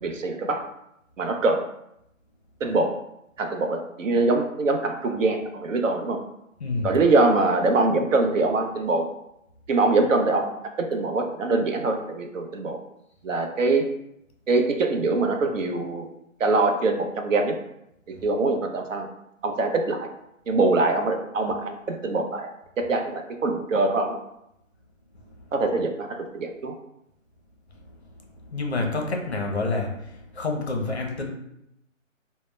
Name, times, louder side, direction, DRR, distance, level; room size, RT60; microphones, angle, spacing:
voice 1, 0.0-0.6 1.2-1.6 2.6-2.9 3.4-6.2 6.8-9.1 9.7-10.5 10.8-12.8 13.2-13.8 14.5-16.1 16.4-17.5 18.2-19.1 19.4-20.1 20.5-24.2 25.5-26.7, right 3 dB, 70° right, 5 dB, 0.5 m, -23 dB
voice 2, 6.6-6.9 28.5-29.9 30.4-31.3, left 3 dB, 55° left, 1 dB, 0.5 m, -27 dB
2.1 x 2.1 x 3.0 m, 0.81 s
hypercardioid pair, 175°, 40 cm